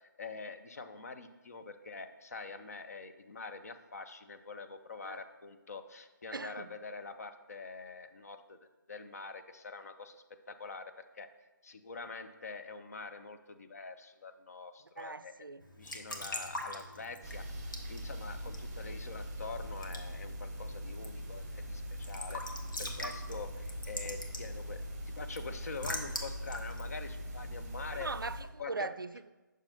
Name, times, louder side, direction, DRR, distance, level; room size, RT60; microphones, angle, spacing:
voice 1, 0.0-8.6 8.9-11.3 11.6-15.3 15.8-22.4 22.8-28.1 28.6-28.9, left 4 dB, 50° left, 7 dB, 0.6 m, -45 dB
voice 2, 6.3-6.7 15.0-15.6 27.9-29.3, right 3 dB, 85° right, 15 dB, 0.4 m, -40 dB
Raindrop / Drip / Trickle dribble, 15.6-28.1, left 1 dB, 70° left, 1.3 m, -45 dB
sound 1, 17.2-28.4, equal, 10° right, 1.3 m, -42 dB
8.6 x 6.1 x 2.9 m, 1.2 s
figure-of-eight pair, 145°, 11 cm